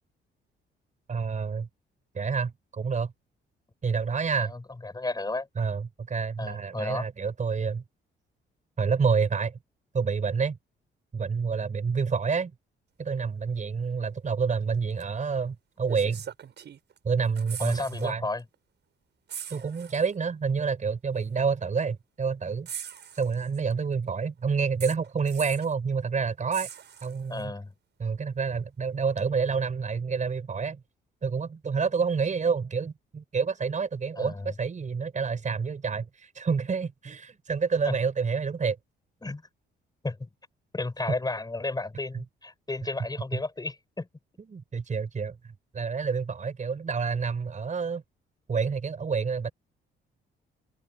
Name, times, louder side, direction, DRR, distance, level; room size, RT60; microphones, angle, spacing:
voice 1, 1.1-1.7 2.1-3.1 3.8-4.5 5.6-7.8 8.8-9.6 9.9-10.6 11.1-12.5 13.0-16.2 17.0-18.2 19.5-22.7 23.1-26.7 27.0-27.5 28.0-30.8 31.2-38.8 42.1-42.2 44.5-45.4 45.7-48.0 48.5-49.5, right 5 dB, 40° right, 5.6 m, -28 dB
voice 2, 4.4-5.5 6.4-7.1 17.6-18.4 27.3-27.7 34.2-34.5 37.9-38.0 39.2-39.4 40.0-40.3 40.7-44.1, left 2 dB, 20° left, 7.0 m, -33 dB
sound 1, 15.0-15.1 15.9-17.0 17.2-18.1 18.4-18.5 19.3-20.1 21.2-21.3 22.7-23.7 24.8-25.7 26.5-27.4 29.2-29.3, right 8 dB, 60° right, 7.8 m, -41 dB
cardioid pair, 90°, 20 cm